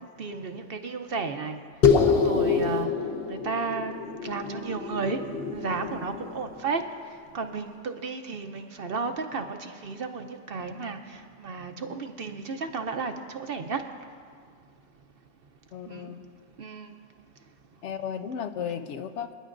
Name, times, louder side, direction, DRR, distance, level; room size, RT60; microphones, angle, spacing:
voice 1, 0.2-1.6 2.1-2.9 3.3-3.9 4.2-5.2 5.5-6.8 7.3-13.8 15.9-16.1 16.6-16.9, right 4 dB, 55° right, 6 dB, 0.8 m, -33 dB
sound 1, 1.8-6.6, left 6 dB, 50° left, 1.1 m, -26 dB
voice 2, 15.7-16.2 17.8-19.3, left 8 dB, 70° left, 9 dB, 0.8 m, -34 dB
27.5 x 10.0 x 2.5 m, 2.1 s
omnidirectional pair, 1.3 m